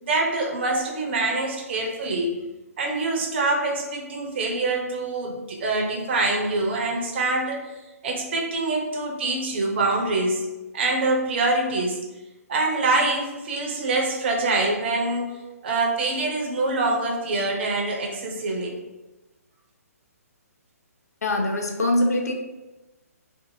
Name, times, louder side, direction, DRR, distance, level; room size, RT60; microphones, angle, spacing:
voice 1, 0.0-2.4 2.8-7.6 8.0-10.4 10.7-12.0 12.5-15.3 15.6-18.8, right 2 dB, 45° right, 1 dB, 0.6 m, -25 dB
voice 2, 21.2-22.3, left 1 dB, 75° left, 2 dB, 0.5 m, -23 dB
2.5 x 2.4 x 2.6 m, 1.1 s
figure-of-eight pair, 130°, 9 cm